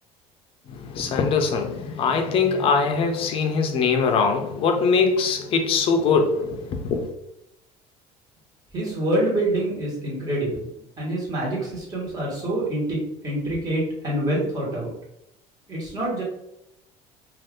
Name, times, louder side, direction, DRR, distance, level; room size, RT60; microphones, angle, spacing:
voice 1, 0.7-7.1, left 5 dB, 40° left, 0.5 m, -22 dB
voice 2, 8.7-10.7 11.0-14.9 15.7-16.2, right 1 dB, 25° right, 1.3 m, -26 dB
2.6 x 2.4 x 3.5 m
cardioid pair, 155°, 14 cm